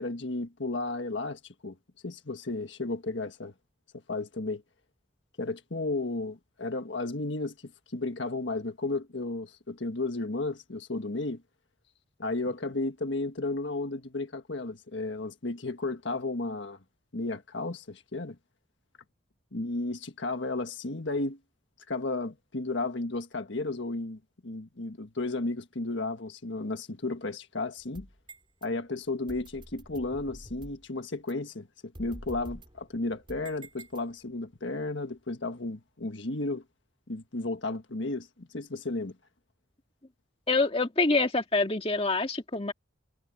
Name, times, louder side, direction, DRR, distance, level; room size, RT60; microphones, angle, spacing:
voice 1, 0.0-1.8 2.0-3.5 4.1-4.6 5.4-11.4 12.2-16.8 17.1-18.4 19.5-21.4 21.9-28.1 28.6-36.6 37.1-39.1, left 2 dB, 70° left, 1.5 m, -33 dB
sound 1, 27.8-28.7 29.3-30.9 31.3-31.4 31.9-34.4, right 1 dB, 25° right, 4.8 m, -47 dB
voice 2, 40.5-42.7, left 3 dB, 30° left, 1.8 m, -26 dB
head